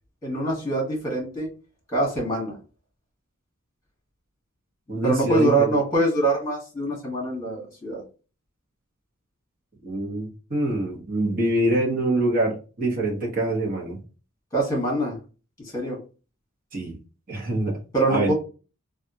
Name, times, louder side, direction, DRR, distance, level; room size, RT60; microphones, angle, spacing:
voice 1, 0.2-1.5 1.9-2.6 5.0-8.0 14.5-15.2 15.6-16.0 17.9-18.3, right 2 dB, 15° left, -1 dB, 1.5 m, -24 dB
voice 2, 4.9-5.7 9.8-14.0 16.7-17.0 17.3-17.7 18.1-18.3, right 1 dB, 40° right, -2 dB, 1.0 m, -25 dB
3.4 x 2.4 x 2.7 m, 0.33 s
head